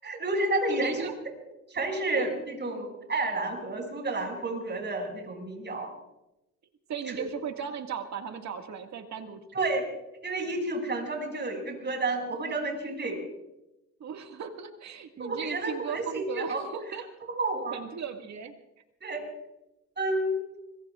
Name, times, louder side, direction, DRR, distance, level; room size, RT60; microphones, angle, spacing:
voice 1, 0.0-1.1 1.7-5.9 7.1-7.2 9.5-9.9 10.2-13.2 15.2-16.6 17.4-17.8 19.0-19.2 20.0-20.4, right 2 dB, 35° right, 2 dB, 6.8 m, -30 dB
voice 2, 0.7-1.1 2.2-2.3 6.9-9.4 14.0-17.0 17.7-18.5, right 7 dB, 65° right, 4 dB, 2.1 m, -37 dB
25.5 x 22.5 x 2.5 m, 0.91 s
cardioid pair, 90°, 30 cm